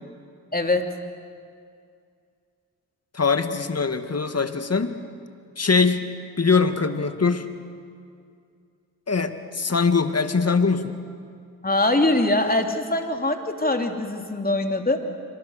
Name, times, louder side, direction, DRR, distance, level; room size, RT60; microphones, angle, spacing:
voice 1, 0.5-0.9 11.6-15.0, left 2 dB, 25° left, 4 dB, 3.2 m, -22 dB
voice 2, 3.1-4.9 5.6-6.1 6.4-7.5 9.1-11.0, left 4 dB, 45° left, 9 dB, 2.0 m, -22 dB
27.0 x 24.5 x 6.6 m, 2.3 s
cardioid pair, 45°, 36 cm